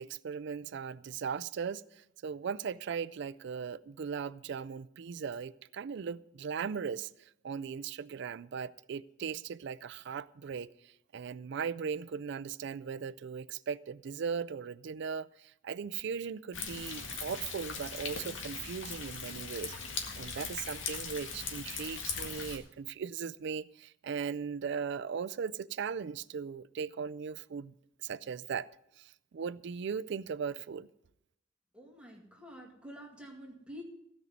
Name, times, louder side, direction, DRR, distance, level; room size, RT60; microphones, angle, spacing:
voice 1, 0.0-19.7 20.2-27.7 28.0-28.7 29.0-30.9, right 6 dB, 65° right, 17 dB, 0.4 m, -38 dB
Thunder, 16.5-22.6, left 5 dB, 85° left, 1.9 m, -40 dB
voice 2, 31.7-33.8, equal, 5° right, -1 dB, 2.0 m, -48 dB
16.0 x 5.4 x 9.3 m, 0.79 s
head